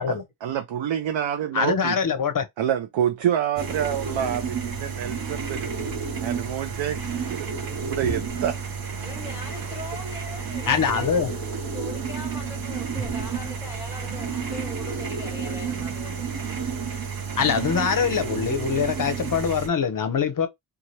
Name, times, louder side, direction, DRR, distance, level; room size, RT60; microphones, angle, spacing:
voice 1, 0.1-2.0 2.6-5.9 6.2-8.6, right 10 dB, 80° right, 0.5 m, -28 dB
voice 2, 1.5-2.5 10.7-11.3 17.4-20.5, left 6 dB, 45° left, 0.6 m, -23 dB
sound 1, 3.6-19.7, right 5 dB, 50° right, 0.8 m, -31 dB
voice 3, 9.0-11.4 11.7-16.3, left 2 dB, 5° right, 1.4 m, -40 dB
2.7 x 2.3 x 3.1 m
wide cardioid pair, 175°, 44 cm